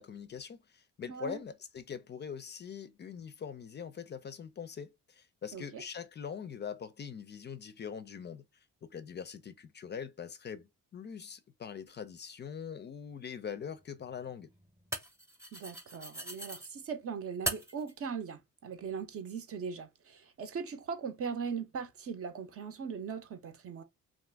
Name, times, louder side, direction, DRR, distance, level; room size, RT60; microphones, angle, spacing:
voice 1, 0.0-8.4 8.9-10.7 10.9-14.5, left 7 dB, 35° left, 0.4 m, -43 dB
voice 2, 1.1-1.4 5.5-5.8 15.5-23.8, right 6 dB, 50° right, 0.7 m, -39 dB
sound 1, 11.9-12.0 13.6-16.7 17.5-17.9, right 1 dB, 10° right, 0.8 m, -40 dB
2.5 x 2.4 x 3.4 m
cardioid pair, 90°, 30 cm